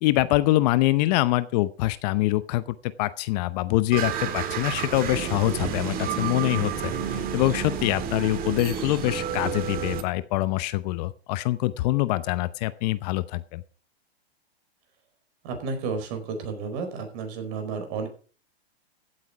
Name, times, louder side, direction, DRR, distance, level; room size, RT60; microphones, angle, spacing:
voice 1, 0.0-13.6, left 17 dB, 40° left, 14 dB, 0.8 m, -25 dB
sound 1, 3.9-10.0, right 8 dB, 25° right, 1.7 m, -30 dB
voice 2, 15.4-18.1, right 4 dB, 45° right, 6 dB, 4.8 m, -32 dB
15.5 x 8.6 x 4.9 m, 0.39 s
hypercardioid pair, 135°, 32 cm